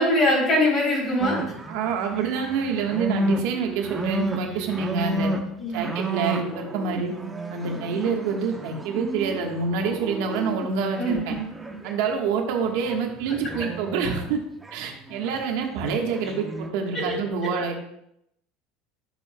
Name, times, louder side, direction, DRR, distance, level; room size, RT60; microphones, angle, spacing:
voice 1, 0.0-1.4 5.6-5.9 11.0-11.1 16.9-17.1, left 1 dB, 30° left, -2 dB, 3.4 m, -22 dB
sound 1, 1.2-11.9 12.8-14.3 14.6-15.4 15.8-16.7, right 2 dB, 10° right, 0.6 m, -32 dB
voice 2, 1.7-5.3 5.7-7.1 7.5-11.4 11.8-14.4 14.7-17.8, right 5 dB, 70° right, 2 dB, 1.3 m, -27 dB
12.0 x 6.7 x 2.2 m, 0.77 s
cardioid pair, 170°, 0 cm